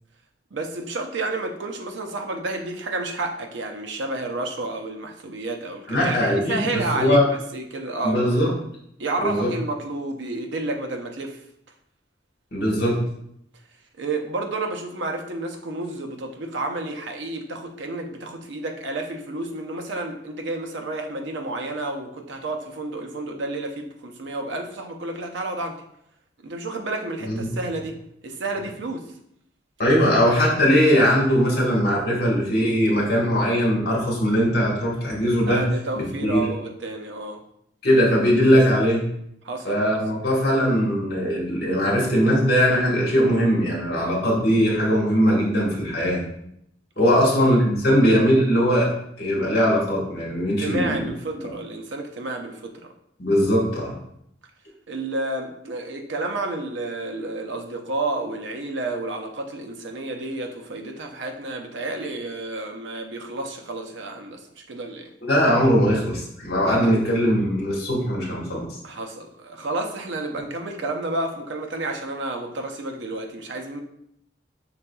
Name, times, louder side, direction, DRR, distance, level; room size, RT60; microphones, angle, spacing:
voice 1, 0.5-8.2 9.0-11.4 14.0-25.8 26.4-28.0 28.2-29.0 35.5-37.4 39.4-40.0 47.0-47.3 47.8-48.1 50.6-52.7 54.9-64.4 64.7-65.1 68.8-73.8, right 2 dB, 80° right, 3 dB, 0.6 m, -30 dB
voice 2, 5.9-7.2 8.0-8.5 9.2-9.5 12.5-13.0 27.2-27.5 29.8-35.7 35.9-36.5 37.8-39.0 39.6-46.2 47.0-48.9 49.2-51.1 53.2-53.9 65.2-68.7, equal, 55° left, -3 dB, 1.4 m, -20 dB
5.7 x 3.7 x 2.3 m, 0.75 s
head